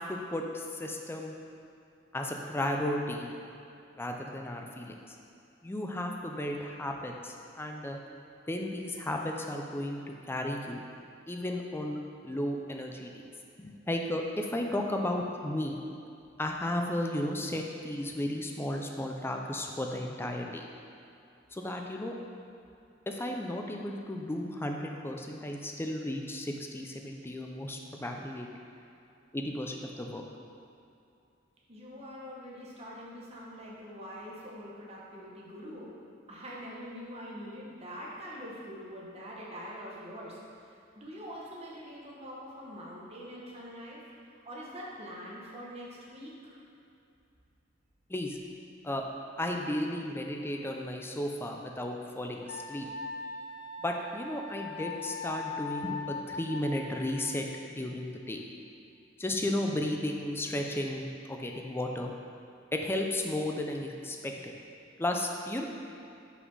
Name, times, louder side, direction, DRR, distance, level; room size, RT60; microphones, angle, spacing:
voice 1, 0.0-1.3 2.1-3.3 3.9-5.2 5.6-8.0 8.5-10.8 11.3-13.1 13.6-15.8 16.4-20.6 21.5-22.2 23.1-28.5 29.3-30.2 48.1-48.4 48.8-49.0 49.4-52.9 53.8-58.4 59.2-62.1 62.7-64.5 65.0-65.6, left 1 dB, 10° left, 2 dB, 0.5 m, -34 dB
voice 2, 31.7-35.9 36.3-40.3 41.0-44.0 44.4-46.6, equal, 35° right, -5 dB, 1.1 m, -44 dB
Wind instrument woodwind instrument, 52.5-57.5, left 4 dB, 65° left, 0.5 m, -40 dB
5.8 x 4.2 x 5.4 m, 2.6 s
head